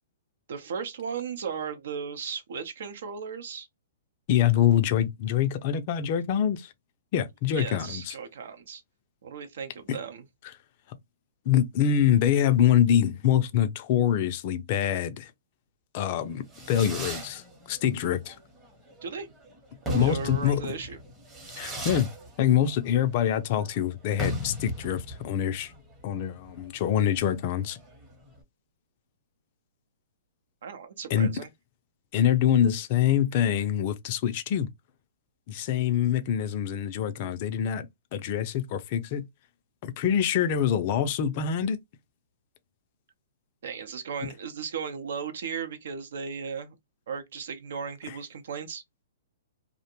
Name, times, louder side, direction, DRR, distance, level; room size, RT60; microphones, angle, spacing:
voice 1, 0.5-3.7 7.5-8.8 9.2-10.2 19.0-19.3 19.9-21.0 30.6-31.5 43.6-46.7 47.1-48.8, right 6 dB, 70° right, 0.6 m, -36 dB
voice 2, 4.3-6.7 7.1-8.2 9.9-10.0 11.5-15.3 15.9-18.4 19.9-20.8 21.6-22.1 22.4-25.7 26.0-27.8 31.1-31.4 32.1-34.7 35.5-39.2 39.8-41.8 44.2-44.3 48.1-48.2, left 9 dB, 45° left, 0.4 m, -25 dB
Fireworks, 16.2-28.4, left 1 dB, 15° right, 0.8 m, -37 dB
2.5 x 2.1 x 2.8 m
hypercardioid pair, 145°, 0 cm